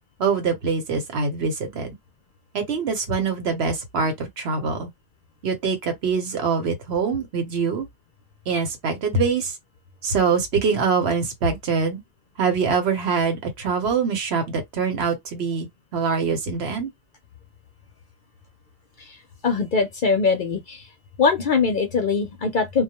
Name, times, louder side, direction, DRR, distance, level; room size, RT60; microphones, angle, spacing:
voice 1, 0.2-1.9 2.5-4.9 5.4-7.9 8.5-9.6 10.0-12.0 12.4-15.7 15.9-16.9, right 5 dB, 65° right, 1.0 m, -24 dB
voice 2, 19.4-20.9 21.2-22.8, left 4 dB, 55° left, 0.6 m, -22 dB
2.3 x 2.1 x 2.8 m
omnidirectional pair, 1.2 m